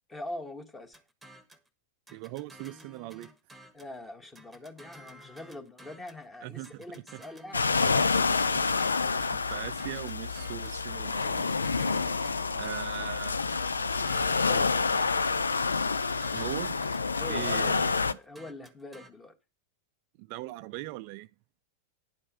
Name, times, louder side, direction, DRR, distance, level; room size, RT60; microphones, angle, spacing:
voice 1, 0.1-1.0 3.7-8.2 17.2-17.8 18.1-19.3, left 1 dB, 15° left, 1.6 m, -43 dB
sound 1, 0.9-1.7 2.1-4.0 4.3-6.2 6.6-10.8 11.2-13.1 13.5-15.4 15.8-19.1, right 1 dB, 5° right, 1.4 m, -52 dB
voice 2, 2.1-3.3 6.4-7.2 8.5-8.7 9.2-11.5 12.5-13.9 16.3-16.8 17.3-17.9 20.2-21.3, right 17 dB, 45° right, 0.4 m, -40 dB
sound 2, 7.5-18.1, left 4 dB, 75° left, 0.5 m, -28 dB
10.5 x 5.4 x 6.6 m
figure-of-eight pair, 90°, 0 cm